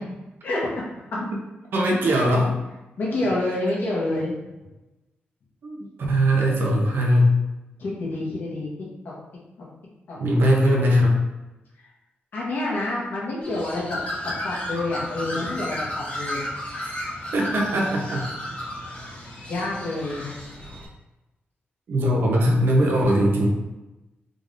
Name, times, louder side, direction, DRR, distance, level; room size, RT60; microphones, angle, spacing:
voice 1, 0.4-0.8 2.1-2.2 3.0-4.3 7.8-8.7 10.1-10.2 12.3-14.0 14.2-16.4 19.4-20.4, left 2 dB, 60° left, -5 dB, 1.2 m, -28 dB
voice 2, 1.7-2.5 5.6-7.4 10.2-11.2 16.8-16.9 17.3-18.3 21.9-23.5, equal, 65° right, -1 dB, 0.9 m, -20 dB
Bird, 13.4-20.9, left 1 dB, 40° left, 1.1 m, -33 dB
3.8 x 3.3 x 2.6 m, 1.0 s
wide cardioid pair, 145°, 4 cm